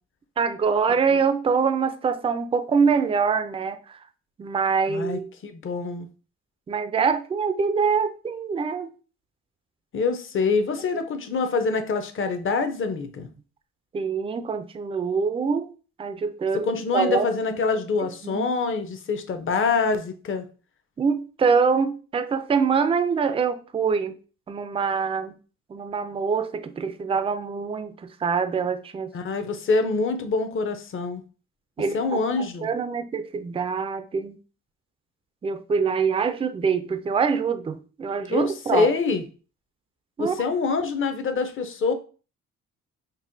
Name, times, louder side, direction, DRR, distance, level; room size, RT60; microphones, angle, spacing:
voice 1, 0.4-4.0 4.4-5.3 6.7-8.9 13.9-15.7 16.0-17.6 18.0-18.5 21.0-24.1 24.5-25.3 25.7-29.1 31.8-32.2 32.6-34.4 35.4-38.9 40.2-40.3, right 5 dB, 20° right, 0.4 m, -24 dB
voice 2, 4.9-6.1 9.9-13.3 16.6-20.4 29.1-31.2 31.9-32.7 38.3-39.2 40.2-41.9, left 4 dB, 45° left, 0.7 m, -25 dB
5.3 x 2.2 x 2.6 m
cardioid pair, 90°, 30 cm